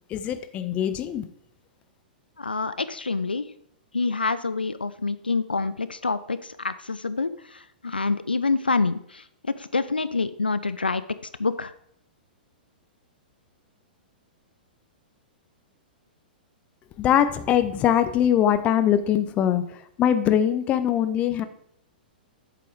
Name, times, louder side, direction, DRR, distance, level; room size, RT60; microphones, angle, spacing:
voice 1, 0.1-1.3 17.0-21.4, left 10 dB, 25° left, 12 dB, 0.6 m, -22 dB
voice 2, 2.4-3.5 3.9-9.2 9.6-11.0 11.4-11.7, left 4 dB, 80° left, 15 dB, 0.4 m, -27 dB
8.3 x 7.5 x 3.7 m, 0.72 s
figure-of-eight pair, 105°, 5 cm